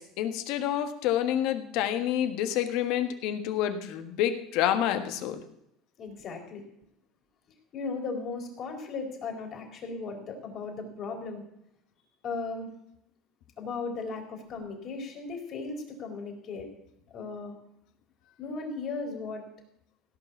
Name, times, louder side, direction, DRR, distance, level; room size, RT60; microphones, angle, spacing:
voice 1, 0.0-5.4, left 11 dB, 70° left, 8 dB, 1.5 m, -28 dB
voice 2, 6.0-6.6 7.7-11.4 12.2-12.7 13.6-16.7 17.1-17.5 18.4-19.4, left 4 dB, 45° left, 1 dB, 4.3 m, -36 dB
16.5 x 6.0 x 8.3 m, 0.79 s
supercardioid pair, 120°, 0 cm